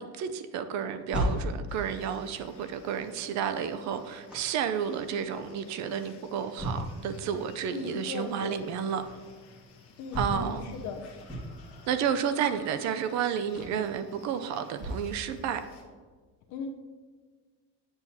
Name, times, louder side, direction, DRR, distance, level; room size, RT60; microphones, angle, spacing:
voice 1, 0.0-9.0 10.2-10.6 11.9-15.7, right 8 dB, 60° right, 0.5 m, -31 dB
sound 1, 0.7-15.1 15.6-15.7, equal, 5° right, 1.9 m, -38 dB
sound 2, 1.7-15.8, left 4 dB, 45° left, 1.2 m, -55 dB
voice 2, 7.7-8.6 10.0-11.1 16.5-16.7, left 5 dB, 60° left, 0.7 m, -38 dB
8.8 x 7.0 x 2.7 m
cardioid pair, 140°, 33 cm